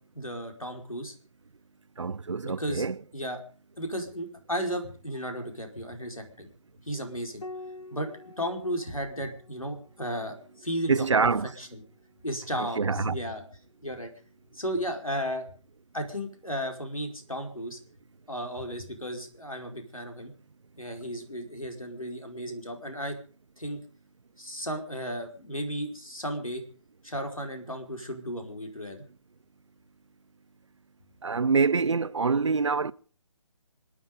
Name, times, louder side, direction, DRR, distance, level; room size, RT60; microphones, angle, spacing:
voice 1, 0.1-1.1 2.4-2.9 3.1-3.4 3.8-6.5 6.8-7.4 7.9-8.1 8.4-11.1 11.6-11.8 12.2-13.4 13.8-14.1 14.5-15.5 15.9-17.8 18.3-20.3 20.8-23.2 23.6-23.8 24.4-26.6 27.0-29.0, equal, 85° left, 5.0 m, -34 dB
voice 2, 2.0-3.0 10.9-11.5 12.6-13.2 31.2-32.9, right 4 dB, 60° right, 0.8 m, -25 dB
Piano, 7.4-12.3 13.9-14.7, left 2 dB, 70° left, 1.7 m, -48 dB
26.5 x 9.7 x 5.3 m
figure-of-eight pair, 145°, 17 cm